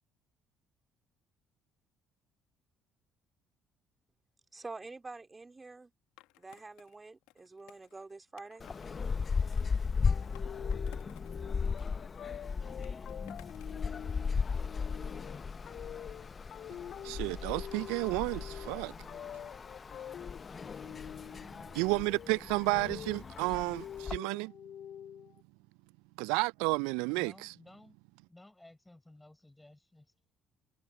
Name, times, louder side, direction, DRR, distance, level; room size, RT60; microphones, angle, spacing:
voice 1, 4.5-5.9 6.4-8.7, right 3 dB, 20° right, 4.1 m, -47 dB
Skateboard, 6.2-8.9 9.5-11.4 11.6-13.8, left 21 dB, 70° left, 1.9 m, -59 dB
sound 1, 8.6-24.2, left 5 dB, 35° left, 1.0 m, -36 dB
sound 2, 10.0-25.4, left 10 dB, 55° left, 0.6 m, -47 dB
voice 2, 17.0-18.9 21.7-24.5 26.2-27.5, right 28 dB, 70° right, 0.5 m, -32 dB
voice 3, 20.4-20.9 27.1-28.0 28.3-30.1, left 1 dB, 10° left, 6.1 m, -57 dB
hypercardioid pair, 50°, 0 cm